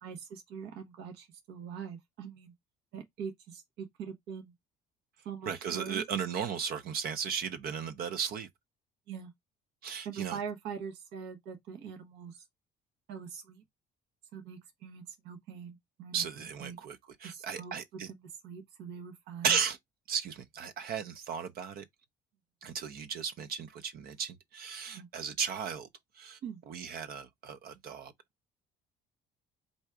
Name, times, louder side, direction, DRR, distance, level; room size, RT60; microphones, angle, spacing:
voice 1, 0.0-2.5 2.9-4.5 5.2-6.0 9.1-9.3 10.0-12.4 13.1-13.6 14.3-16.2 16.6-16.8 17.2-17.7 18.1-19.6 24.9-25.1 26.4-26.6, right 7 dB, 85° right, 1.2 m, -43 dB
voice 2, 5.5-8.5 9.8-10.4 16.1-18.1 19.4-19.8 20.1-21.8 22.6-25.9 26.2-26.4 26.7-28.1, right 7 dB, 60° right, 0.6 m, -35 dB
3.9 x 2.4 x 4.6 m
cardioid pair, 110°, 17 cm